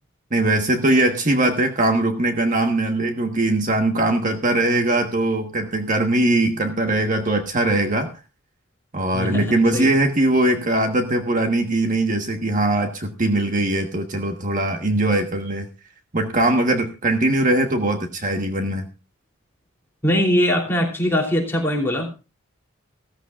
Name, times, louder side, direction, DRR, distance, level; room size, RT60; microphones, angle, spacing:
voice 1, 0.3-8.1 8.9-15.7 16.1-18.9, right 1 dB, 35° right, 5 dB, 1.3 m, -21 dB
voice 2, 9.1-9.9 20.0-22.1, equal, 10° left, 0 dB, 3.0 m, -21 dB
16.0 x 14.5 x 2.4 m, 0.31 s
head